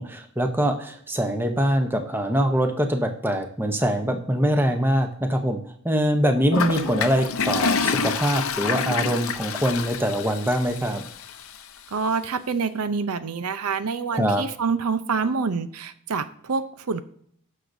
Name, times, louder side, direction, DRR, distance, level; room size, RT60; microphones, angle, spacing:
voice 1, 0.0-11.0 14.1-14.4, equal, 10° right, 5 dB, 0.8 m, -23 dB
Toilet flush, 6.5-11.6, left 5 dB, 70° left, 0.7 m, -27 dB
voice 2, 11.9-17.0, right 5 dB, 85° right, 12 dB, 0.6 m, -26 dB
18.0 x 6.5 x 2.7 m, 0.65 s
head